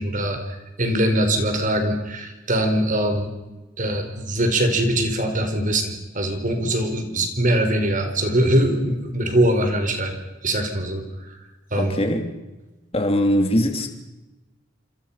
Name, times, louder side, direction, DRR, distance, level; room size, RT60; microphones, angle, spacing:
voice 1, 0.0-3.3 3.8-10.1 10.4-11.0 11.7-12.0, right 1 dB, 45° right, 4.7 m, -22 dB
voice 2, 11.8-12.3 12.9-13.9, equal, 30° left, 3.1 m, -21 dB
27.5 x 26.5 x 5.8 m
head